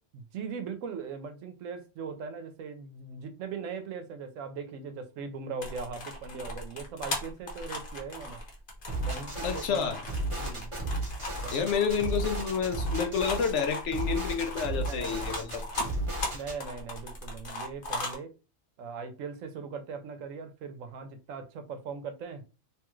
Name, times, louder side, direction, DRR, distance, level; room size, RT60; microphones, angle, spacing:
voice 1, 0.1-8.4 9.0-9.8 10.4-10.7 11.4-11.7 14.9-15.6 16.3-18.3 18.8-22.5, right 5 dB, 80° right, 1.0 m, -40 dB
sound 1, 5.6-18.2, left 1 dB, 45° left, 1.0 m, -38 dB
sound 2, 8.9-9.7 10.1-13.5 13.9-16.6, right 1 dB, 25° right, 0.9 m, -34 dB
voice 2, 9.4-10.0 11.5-15.9, left 6 dB, 70° left, 0.9 m, -29 dB
3.1 x 2.3 x 3.0 m
omnidirectional pair, 1.3 m